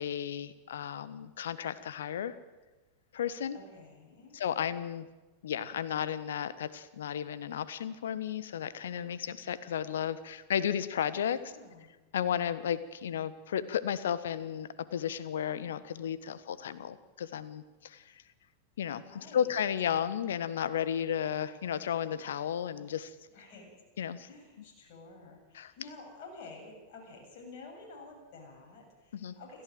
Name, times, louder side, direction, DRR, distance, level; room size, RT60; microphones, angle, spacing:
voice 1, 0.0-2.4 3.1-3.6 4.3-5.1 5.4-11.4 12.1-18.0 18.8-23.1 24.0-24.3 25.5-25.7 29.1-29.4, left 9 dB, 60° left, 16 dB, 1.3 m, -33 dB
voice 2, 3.5-4.4 11.2-11.9 18.9-19.7 23.3-23.7 24.3-29.6, left 3 dB, 45° left, 1 dB, 7.2 m, -50 dB
28.0 x 15.0 x 7.8 m, 1.2 s
figure-of-eight pair, 90°, 0 cm